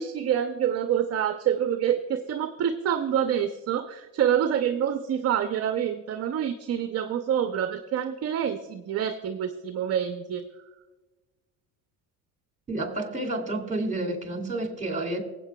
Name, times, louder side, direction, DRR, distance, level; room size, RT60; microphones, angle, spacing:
voice 1, 0.0-10.5, right 9 dB, 35° right, 7 dB, 0.6 m, -27 dB
voice 2, 12.7-15.2, right 2 dB, 15° right, 3 dB, 2.4 m, -30 dB
20.0 x 8.3 x 2.3 m, 1.2 s
supercardioid pair, 90°, 44 cm